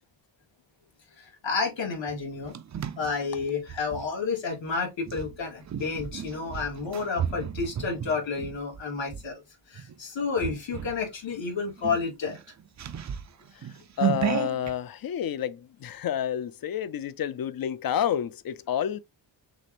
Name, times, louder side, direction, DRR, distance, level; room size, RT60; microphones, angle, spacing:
voice 1, 1.2-2.5 3.0-9.4 9.7-12.4, left 4 dB, 80° left, 2.2 m, -30 dB
sound 1, 2.1-4.1 5.0-9.3 9.8-10.0 10.4-11.0 11.4-11.5 11.8-14.7, right 10 dB, 40° right, 0.4 m, -33 dB
voice 2, 13.5-19.0, left 9 dB, 50° left, 0.5 m, -30 dB
6.4 x 2.5 x 2.9 m
wide cardioid pair, 145°, 45 cm